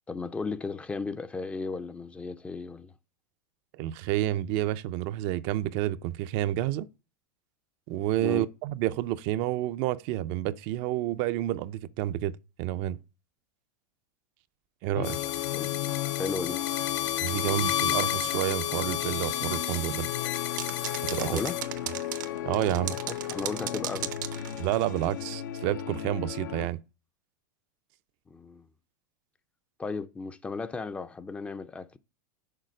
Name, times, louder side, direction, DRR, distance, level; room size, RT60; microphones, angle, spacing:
voice 1, 0.1-2.9 8.2-8.5 15.5-15.7 16.2-16.6 21.2-21.6 23.1-24.1 28.3-28.7 29.8-32.0, left 4 dB, 10° left, 0.4 m, -35 dB
voice 2, 3.8-6.9 7.9-13.0 14.8-15.2 17.2-20.1 21.1-21.4 22.5-23.0 24.6-26.8, right 14 dB, 50° right, 0.4 m, -29 dB
sound 1, 14.9-26.7, left 13 dB, 80° left, 0.6 m, -35 dB
sound 2, 15.0-21.6, left 11 dB, 40° left, 0.7 m, -32 dB
sound 3, 20.6-25.1, right 13 dB, 80° right, 0.8 m, -37 dB
6.6 x 4.0 x 6.3 m
supercardioid pair, 130°, 10 cm